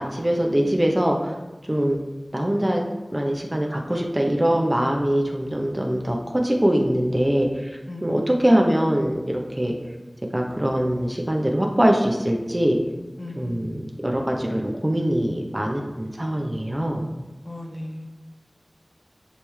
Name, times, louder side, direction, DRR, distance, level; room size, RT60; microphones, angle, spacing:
voice 1, 0.0-1.4 1.7-2.0 2.3-2.8 3.1-9.7 10.3-12.8 13.4-17.0, equal, 25° right, 1 dB, 0.8 m, -23 dB
voice 2, 7.9-8.4 13.2-13.7 17.4-18.1, left 1 dB, 40° left, 2 dB, 0.9 m, -36 dB
10.0 x 3.4 x 3.3 m, 1.2 s
wide cardioid pair, 45°, 0 cm